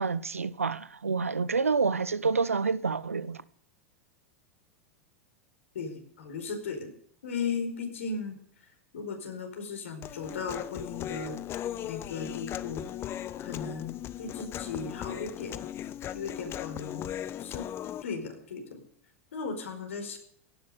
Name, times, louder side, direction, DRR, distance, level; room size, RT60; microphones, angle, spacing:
voice 1, 0.0-3.4, right 4 dB, 80° right, 0.7 m, -28 dB
voice 2, 5.7-6.9 7.2-8.4 8.9-11.4 11.8-12.8 13.4-15.7 16.1-17.1 17.4-17.6 18.0-18.8 19.3-20.2, left 5 dB, 70° left, 4.9 m, -36 dB
Human voice, 10.0-18.0, left 11 dB, 35° left, 0.8 m, -38 dB
17.0 x 10.5 x 6.6 m
figure-of-eight pair, 85°, 7 cm